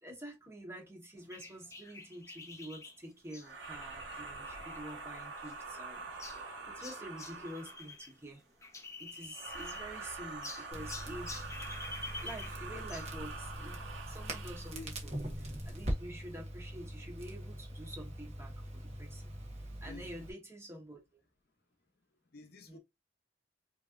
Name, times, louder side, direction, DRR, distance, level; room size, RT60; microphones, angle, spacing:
voice 1, 0.0-8.4 9.0-11.5 12.2-19.3 19.8-21.2 22.7-22.8, right 1 dB, 15° right, 1.3 m, -48 dB
sound 1, 1.3-8.1 8.4-10.1 10.4-13.1, left 3 dB, 15° left, 0.7 m, -48 dB
sound 2, 3.4-8.0 9.3-14.8, right 3 dB, 80° right, 1.1 m, -45 dB
Crackle, 10.7-20.3, equal, 35° right, 1.3 m, -42 dB
voice 2, 22.3-22.8, left 3 dB, 55° left, 0.8 m, -49 dB
5.3 x 2.9 x 2.6 m
head